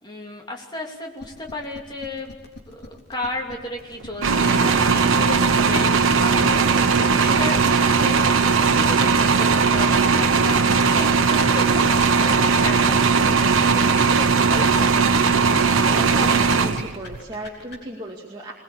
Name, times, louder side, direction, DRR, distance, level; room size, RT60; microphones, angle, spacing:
voice 1, 0.0-2.3 2.7-14.9, left 2 dB, 20° left, 0 dB, 3.0 m, -34 dB
sound 1, 1.2-17.8, left 2 dB, 50° left, 3.8 m, -43 dB
sound 2, 4.2-17.2, right 5 dB, 80° right, 1.3 m, -18 dB
voice 2, 15.9-18.5, right 1 dB, 20° right, -3 dB, 2.3 m, -34 dB
21.5 x 21.0 x 8.6 m, 1.3 s
head